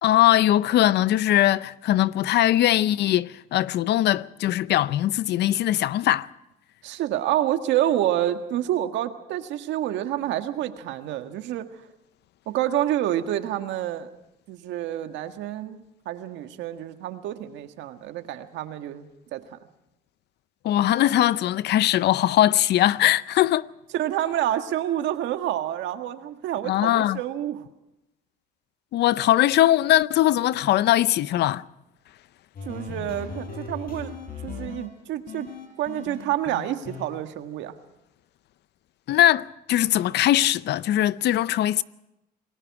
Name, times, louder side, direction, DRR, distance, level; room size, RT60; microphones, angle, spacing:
voice 1, 0.0-6.3 20.6-23.7 26.7-27.2 28.9-31.6 39.1-41.8, left 13 dB, 65° left, 0.7 m, -21 dB
voice 2, 6.8-11.7 12.5-14.1 14.5-19.6 23.9-27.7 32.6-34.2 34.4-35.5 35.8-37.7, right 12 dB, 80° right, 1.7 m, -28 dB
sound 1, 32.6-34.9 35.3-37.1, left 5 dB, 50° left, 5.5 m, -37 dB
28.0 x 19.5 x 4.8 m
cardioid pair, 100°, 19 cm